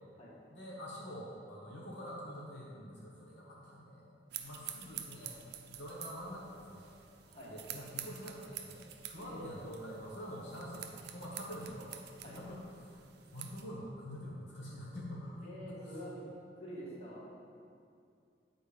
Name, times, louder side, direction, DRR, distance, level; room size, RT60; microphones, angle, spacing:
voice 1, 0.5-7.0 7.5-11.9 12.3-13.0 13.3-16.0, equal, 75° left, -5 dB, 1.1 m, -46 dB
sound 1, 4.3-13.7, right 10 dB, 65° right, 0.5 m, -48 dB
voice 2, 7.2-7.5 9.1-9.5 12.2-12.4 15.4-16.2 16.6-17.3, equal, 35° left, -6 dB, 1.7 m, -46 dB
8.5 x 4.3 x 5.0 m, 2.4 s
head